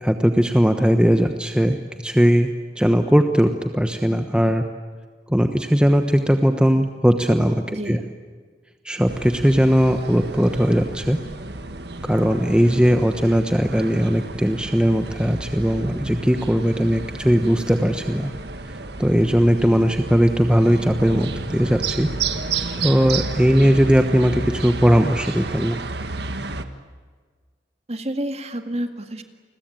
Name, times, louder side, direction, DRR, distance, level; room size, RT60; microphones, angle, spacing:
voice 1, 0.0-2.5 2.8-4.6 5.3-8.0 8.8-11.2 12.0-18.3 19.0-22.1 22.8-25.8, equal, 5° right, 6 dB, 1.1 m, -19 dB
voice 2, 7.7-8.0 27.9-29.2, right 1 dB, 35° right, 7 dB, 2.0 m, -29 dB
sound 1, 9.1-26.6, right 3 dB, 70° right, 1.6 m, -31 dB
29.5 x 22.0 x 9.0 m, 1.5 s
head